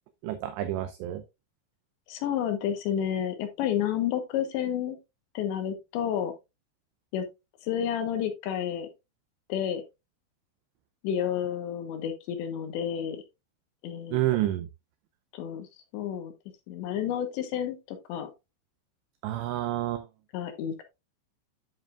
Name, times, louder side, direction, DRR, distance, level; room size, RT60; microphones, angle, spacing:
voice 1, 0.2-1.2 14.1-14.7 19.2-20.0, right 14 dB, 90° right, 9 dB, 2.4 m, -29 dB
voice 2, 2.1-5.0 5.3-6.3 7.1-7.3 7.6-8.9 9.5-9.8 11.0-13.2 13.8-14.2 15.3-15.7 15.9-16.3 16.7-18.3 20.3-20.8, left 9 dB, 75° left, 7 dB, 3.1 m, -30 dB
10.0 x 7.3 x 2.4 m, 0.24 s
omnidirectional pair, 5.7 m